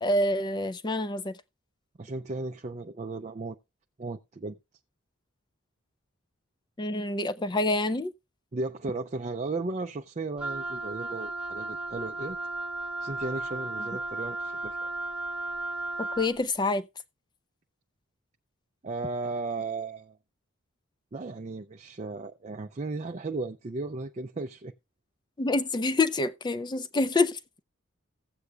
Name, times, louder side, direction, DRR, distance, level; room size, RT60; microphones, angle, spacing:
voice 1, 0.0-1.4 6.8-8.1 16.0-16.9 25.4-27.4, left 2 dB, 20° left, 0.5 m, -27 dB
voice 2, 2.0-3.6 4.0-4.6 8.5-12.4 13.0-14.8 18.8-20.2 21.1-24.7, right 3 dB, 35° right, 0.5 m, -35 dB
Wind instrument woodwind instrument, 10.4-16.4, right 2 dB, 5° right, 1.1 m, -35 dB
16.0 x 8.0 x 2.3 m
head